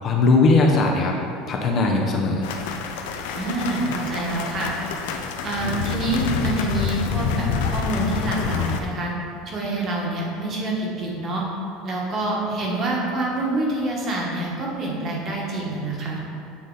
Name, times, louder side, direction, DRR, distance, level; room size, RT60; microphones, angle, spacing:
voice 1, 0.0-1.1 1.5-2.5, left 3 dB, 30° left, 0 dB, 0.5 m, -19 dB
sound 1, 2.4-8.8, left 6 dB, 85° left, 0.5 m, -27 dB
voice 2, 3.4-4.7 5.4-9.1 9.5-11.4 11.8-16.2, right 2 dB, 30° right, -3 dB, 1.1 m, -26 dB
8.3 x 3.9 x 3.8 m, 2.6 s
cardioid pair, 165°, 0 cm